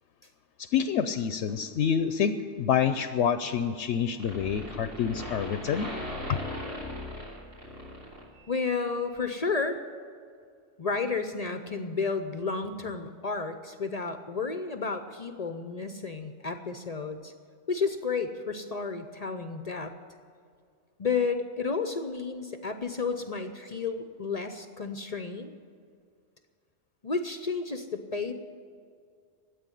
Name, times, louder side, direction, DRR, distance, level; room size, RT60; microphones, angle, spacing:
voice 1, 0.6-5.9 6.3-6.4, left 7 dB, 75° left, 10 dB, 0.9 m, -27 dB
sound 1, 3.8-3.9 4.2-8.6, equal, 85° right, 3.4 m, -38 dB
voice 2, 8.5-9.8 10.8-17.3 17.7-19.9 21.0-25.5 27.0-28.3, left 4 dB, 40° left, 8 dB, 0.6 m, -32 dB
13.0 x 8.4 x 9.8 m, 2.2 s
omnidirectional pair, 1.2 m